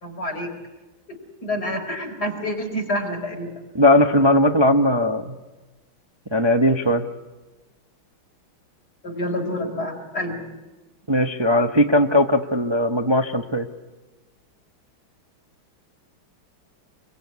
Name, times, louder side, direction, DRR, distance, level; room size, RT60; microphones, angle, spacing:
voice 1, 0.0-0.5 1.1-3.5 9.0-10.4, left 1 dB, 45° left, 2 dB, 4.8 m, -28 dB
voice 2, 3.7-5.3 6.3-7.0 11.1-13.7, left 1 dB, 20° right, 5 dB, 0.6 m, -18 dB
26.0 x 23.0 x 9.5 m, 1.2 s
omnidirectional pair, 2.3 m